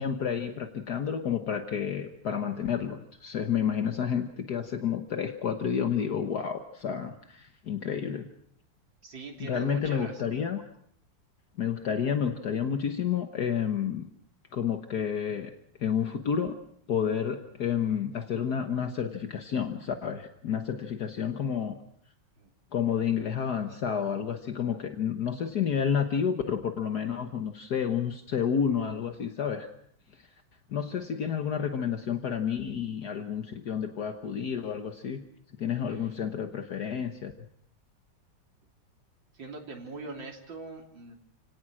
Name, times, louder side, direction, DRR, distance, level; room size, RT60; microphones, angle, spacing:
voice 1, 0.0-8.3 9.4-10.6 11.6-14.1 14.5-15.5 15.8-16.6 16.9-21.8 22.7-29.7 30.2-30.3 30.7-35.2 35.6-37.3, left 7 dB, 60° left, 6 dB, 1.7 m, -30 dB
voice 2, 9.0-10.4 22.4-22.5 31.7-31.9 35.9-36.1 39.3-41.1, right 3 dB, 90° right, 1 dB, 3.9 m, -42 dB
30.0 x 17.5 x 6.2 m, 0.67 s
omnidirectional pair, 2.0 m